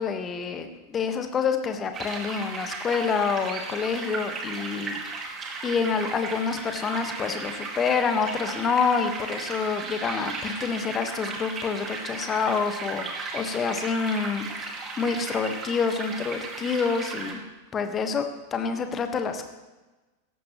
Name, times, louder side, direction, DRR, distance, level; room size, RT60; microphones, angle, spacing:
voice 1, 0.0-5.0 5.6-17.4 17.7-19.5, left 5 dB, 25° left, 7 dB, 1.4 m, -27 dB
sound 1, 1.9-17.3, right 4 dB, 25° right, 2.1 m, -35 dB
17.0 x 14.0 x 3.1 m, 1.2 s
figure-of-eight pair, 90°, 0 cm